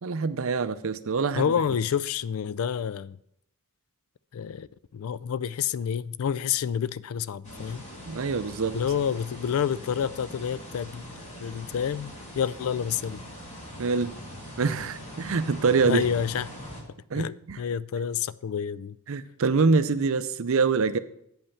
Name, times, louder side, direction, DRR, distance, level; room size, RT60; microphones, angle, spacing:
voice 1, 0.0-1.5 8.1-8.8 13.8-14.1 14.6-16.0 17.1-17.6 19.1-21.0, right 4 dB, 65° right, 0.5 m, -25 dB
voice 2, 1.4-3.2 4.3-4.7 4.9-7.9 8.7-11.1 11.4-13.2 15.8-16.5 17.1-19.0, left 8 dB, 70° left, 0.3 m, -29 dB
sound 1, 7.4-16.8, equal, 30° left, 2.3 m, -42 dB
8.7 x 5.5 x 7.0 m
head